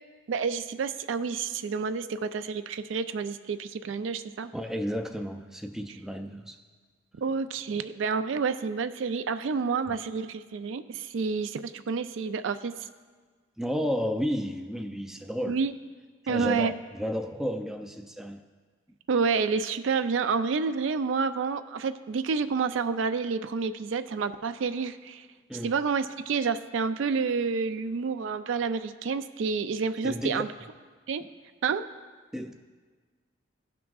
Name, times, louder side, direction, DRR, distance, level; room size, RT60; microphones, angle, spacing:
voice 1, 0.3-4.5 7.2-12.7 15.5-15.7 16.3-16.7 19.1-25.3 25.6-30.5 31.1-31.2 31.6-31.9, right 5 dB, 80° right, 11 dB, 0.4 m, -29 dB
voice 2, 4.5-6.6 13.6-15.6 16.2-18.4 25.5-25.7 30.0-30.4 31.2-31.3 32.3-32.5, equal, 5° right, 5 dB, 0.3 m, -32 dB
16.5 x 6.0 x 2.3 m, 1.5 s
head